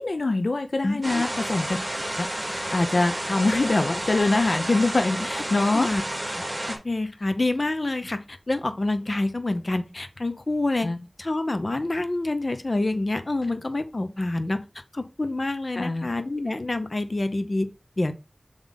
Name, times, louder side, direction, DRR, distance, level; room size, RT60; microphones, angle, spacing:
voice 1, 0.0-1.8 2.2-5.9 10.8-11.0 15.7-16.1, left 2 dB, 85° left, 0.5 m, -24 dB
voice 2, 0.8-1.2 5.7-6.0 6.7-10.9 11.2-14.6 14.9-17.7 18.0-18.1, left 2 dB, 60° left, 0.9 m, -27 dB
sound 1, 1.0-6.8, right 1 dB, 30° right, 2.4 m, -30 dB
7.1 x 3.6 x 4.1 m
wide cardioid pair, 45°, 0 cm